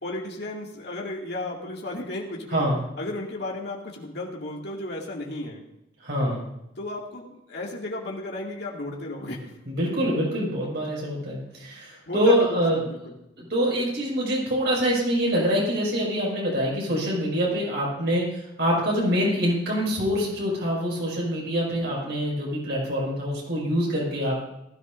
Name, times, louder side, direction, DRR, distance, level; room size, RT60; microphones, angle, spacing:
voice 1, 0.0-2.7 3.0-5.6 6.8-9.5 12.1-13.2, left 2 dB, 65° left, -2 dB, 2.4 m, -34 dB
voice 2, 6.0-6.5 9.7-12.8 13.4-24.4, equal, 65° right, -4 dB, 6.0 m, -25 dB
19.5 x 14.0 x 2.7 m, 0.86 s
head